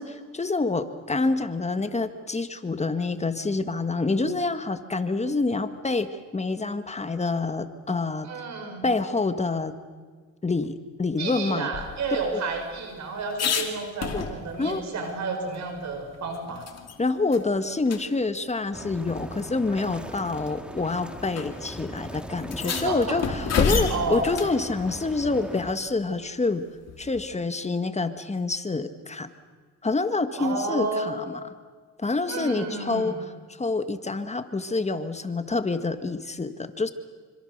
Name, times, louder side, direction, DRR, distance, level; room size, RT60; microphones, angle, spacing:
voice 1, 0.0-8.3 8.8-9.8 10.4-11.7 12.3-12.4 14.1-14.3 14.6-14.8 17.0-26.7 27.0-29.3 29.8-31.4 32.0-33.2 33.5-36.9, left 3 dB, 20° left, 10 dB, 1.7 m, -27 dB
voice 2, 8.2-8.9 11.2-16.6 22.6-23.2 23.9-24.3 30.4-31.2 32.3-33.2, right 3 dB, 65° right, 4 dB, 5.9 m, -31 dB
sound 1, 11.7-14.7 15.1-15.2 15.5-17.0 17.3-17.5 17.8-18.0 19.1-19.2 20.0-20.3 21.3-21.5 21.7-21.8 22.4-24.6 26.9-27.3, left 6 dB, 55° left, 2.9 m, -30 dB
sound 2, 18.7-25.7, equal, 5° right, 2.0 m, -39 dB
26.5 x 25.5 x 6.7 m, 1.5 s
cardioid pair, 90°, 30 cm